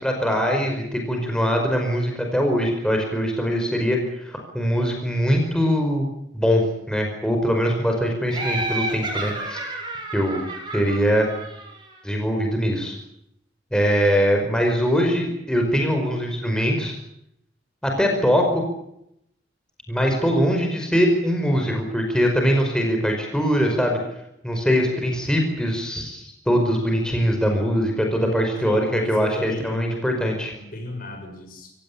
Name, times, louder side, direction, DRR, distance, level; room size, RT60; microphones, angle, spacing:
voice 1, 0.0-6.0 6.3-9.6 10.1-10.4 10.7-11.3 12.0-13.0 13.7-17.0 17.8-18.6 19.9-24.0 24.4-30.5, equal, 5° left, 2 dB, 5.1 m, -22 dB
Laughter, 8.3-11.9, right 2 dB, 25° right, 7.7 m, -31 dB
voice 2, 28.2-30.0 30.5-31.7, equal, 50° left, 5 dB, 6.8 m, -34 dB
28.5 x 17.0 x 8.7 m, 0.77 s
head